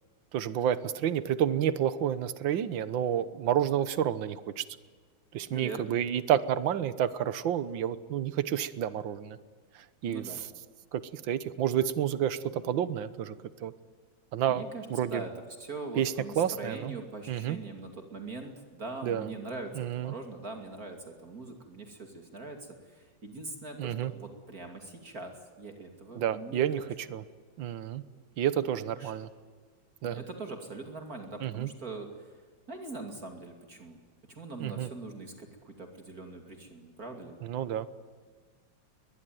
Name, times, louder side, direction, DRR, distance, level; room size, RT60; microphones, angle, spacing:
voice 1, 0.3-4.7 5.3-9.4 9.8-10.2 10.9-13.7 14.3-14.6 14.9-15.2 16.0-17.0 17.3-17.6 19.0-19.3 19.8-20.1 23.8-24.1 26.2-27.2 27.6-28.0 28.4-29.3 30.0-30.2 31.4-31.7 34.6-34.9 37.4-37.9, right 10 dB, 75° right, 14 dB, 1.8 m, -30 dB
voice 2, 5.5-5.9 10.1-10.4 14.5-15.3 15.6-26.7 29.0-29.1 30.0-32.4 32.7-34.0 34.3-37.4, right 3 dB, 45° right, 4 dB, 3.0 m, -42 dB
22.0 x 21.5 x 9.3 m, 1.5 s
omnidirectional pair, 2.2 m